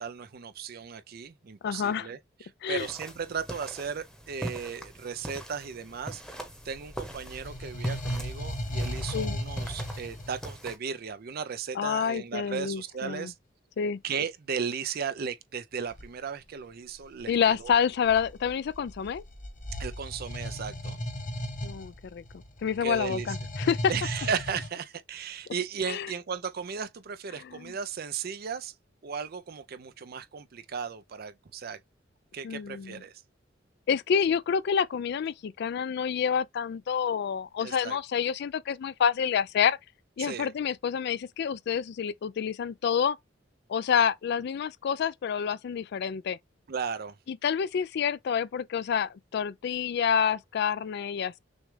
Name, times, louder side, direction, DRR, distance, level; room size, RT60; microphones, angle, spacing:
voice 1, 0.0-13.3 14.0-17.7 19.8-21.0 22.8-23.3 23.9-28.7 29.0-31.8 32.3-33.2 37.6-38.0 40.2-40.5 46.7-47.2, right 6 dB, 55° right, 0.5 m, -36 dB
voice 2, 1.6-2.1 2.6-2.9 9.1-9.4 11.8-13.3 13.8-14.0 17.3-19.2 21.6-22.2 22.6-23.8 25.9-26.1 27.5-27.7 32.4-33.0 33.9-39.8 40.2-43.2 43.7-46.4 47.3-51.4, left 7 dB, 60° left, 0.3 m, -28 dB
sound 1, 2.8-10.8, equal, 5° left, 0.9 m, -42 dB
sound 2, 6.5-10.5 15.9-16.1 16.9-24.7, equal, 45° left, 1.0 m, -36 dB
6.3 x 2.3 x 3.2 m
head